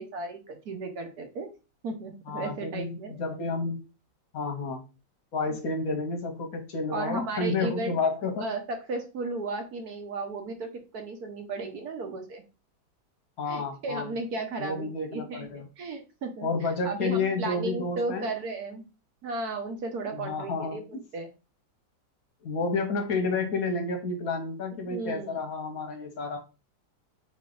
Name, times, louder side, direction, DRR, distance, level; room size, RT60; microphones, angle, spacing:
voice 1, 0.0-1.5 1.8-3.2 5.5-5.6 6.9-8.0 8.4-12.4 13.5-16.5 16.8-18.8 19.2-21.3 24.9-25.4, right 3 dB, 60° right, 5 dB, 1.2 m, -35 dB
voice 2, 2.3-3.8 4.3-4.8 5.3-8.5 13.4-14.1 14.6-15.7 16.4-18.2 20.1-21.0 22.4-26.4, left 3 dB, 60° left, 5 dB, 1.1 m, -30 dB
4.4 x 3.1 x 3.8 m, 0.30 s
omnidirectional pair, 2.0 m